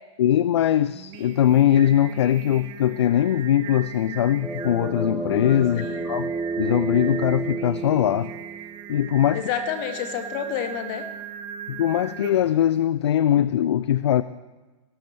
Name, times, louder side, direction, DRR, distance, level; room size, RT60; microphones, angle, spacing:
voice 1, 0.2-6.3 6.6-8.3 8.9-9.5 11.7-14.2, left 11 dB, 60° left, 16 dB, 0.4 m, -21 dB
Singing, 0.9-12.6, right 9 dB, 30° right, 1.1 m, -39 dB
sound 1, 4.4-8.9, right 4 dB, 5° right, 0.8 m, -30 dB
voice 2, 5.7-6.1 9.3-11.0, left 9 dB, 40° left, 7 dB, 1.5 m, -29 dB
18.5 x 11.5 x 3.3 m, 1.2 s
figure-of-eight pair, 105°, 16 cm